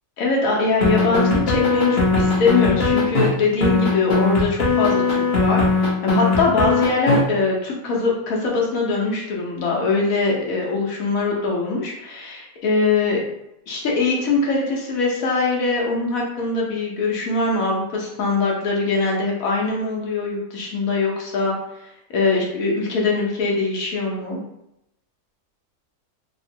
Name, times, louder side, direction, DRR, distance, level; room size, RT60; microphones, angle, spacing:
voice 1, 0.2-13.2 13.7-21.5 22.1-24.4, left 3 dB, 70° left, -2 dB, 1.2 m, -22 dB
sound 1, 0.8-3.3 3.6-7.2, left 3 dB, 50° left, 0.9 m, -19 dB
3.6 x 2.1 x 2.6 m, 0.81 s
omnidirectional pair, 1.6 m